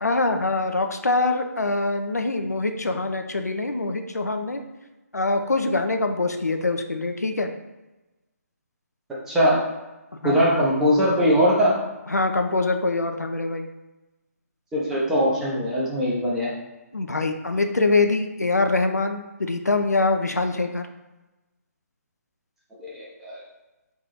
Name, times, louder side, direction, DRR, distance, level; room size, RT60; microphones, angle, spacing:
voice 1, 0.0-4.7 5.1-7.5 10.2-10.7 12.1-13.7 16.9-20.9, left 3 dB, 80° left, 6 dB, 0.4 m, -24 dB
voice 2, 9.3-9.6 10.2-11.8 14.7-16.5 22.8-23.4, equal, 5° right, -7 dB, 0.7 m, -21 dB
3.4 x 2.7 x 3.9 m, 1.1 s
figure-of-eight pair, 140°, 9 cm